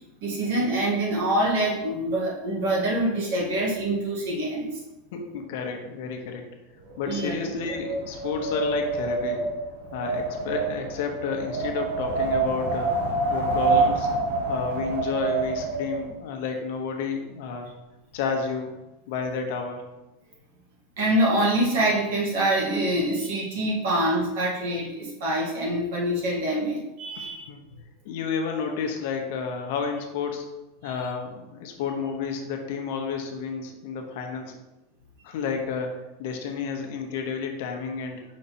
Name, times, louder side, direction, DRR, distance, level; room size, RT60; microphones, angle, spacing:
voice 1, 0.2-4.7 7.0-7.5 21.0-27.5 30.8-31.0, right 1 dB, 60° right, -3 dB, 2.0 m, -25 dB
voice 2, 5.1-6.5 7.0-9.4 9.9-13.0 13.3-14.1 14.5-17.7 18.1-18.8 19.1-19.8 27.1-27.6 28.0-30.4 30.8-34.6 35.2-38.2, left 5 dB, 55° left, 3 dB, 0.9 m, -31 dB
Wind, 6.9-16.1, right 3 dB, 85° right, 1.1 m, -27 dB
5.3 x 4.2 x 4.2 m, 1.0 s
supercardioid pair, 175°, 0 cm